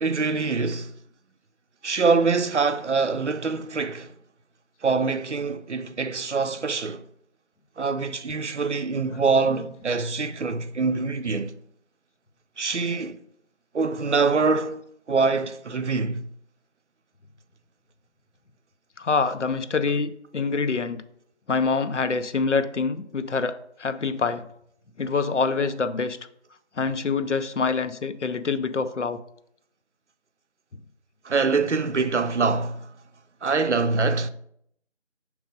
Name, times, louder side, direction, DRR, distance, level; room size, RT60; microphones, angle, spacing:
voice 1, 0.0-0.9 1.8-4.1 4.8-7.0 7.8-11.5 12.6-13.2 13.7-14.8 15.1-16.2 31.2-32.9 33.4-34.3, right 4 dB, 70° right, 0.6 m, -24 dB
voice 2, 19.0-21.0 21.5-24.4 25.0-26.2 26.8-29.2, left 4 dB, 75° left, 0.6 m, -25 dB
6.3 x 3.1 x 5.1 m
figure-of-eight pair, 180°, 36 cm